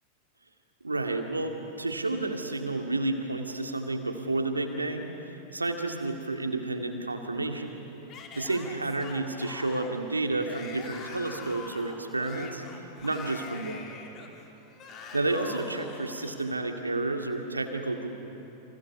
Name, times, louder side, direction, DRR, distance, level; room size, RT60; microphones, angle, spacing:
voice 1, 0.8-7.8 8.4-12.6 13.0-13.8 15.1-18.1, right 2 dB, 80° right, 5 dB, 2.2 m, -31 dB
Yell / Screaming, 8.1-16.4, left 5 dB, 30° left, 3.0 m, -44 dB
29.5 x 26.5 x 6.9 m, 3.0 s
figure-of-eight pair, 90°, 0 cm